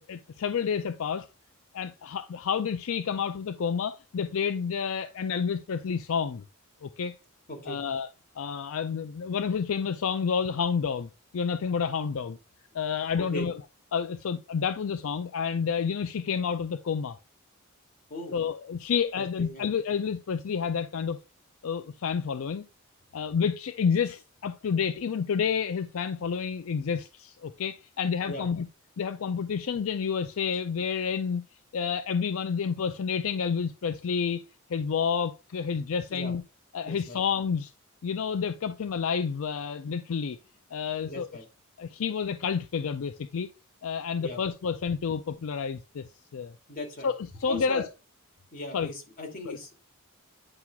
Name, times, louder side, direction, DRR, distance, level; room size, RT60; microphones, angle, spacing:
voice 1, 0.1-1.3 1.7-6.4 6.8-7.1 7.7-8.1 8.4-12.4 12.7-13.6 13.9-17.2 18.3-21.2 21.6-22.6 23.1-28.7 29.0-31.4 31.7-36.4 36.7-37.7 38.0-40.4 40.7-41.3 41.8-43.5 43.8-46.5 47.0-47.1 47.4-47.8 48.7-48.9 49.5-49.6, left 6 dB, 70° left, 0.4 m, -29 dB
voice 2, 7.5-7.8 13.2-13.5 18.1-18.4 19.1-19.7 28.3-28.5 36.1-36.3 36.8-37.2 41.0-41.4 44.2-44.4 46.7-47.1 47.5-47.9 48.5-49.8, left 1 dB, 40° left, 2.6 m, -38 dB
9.8 x 5.8 x 2.4 m
head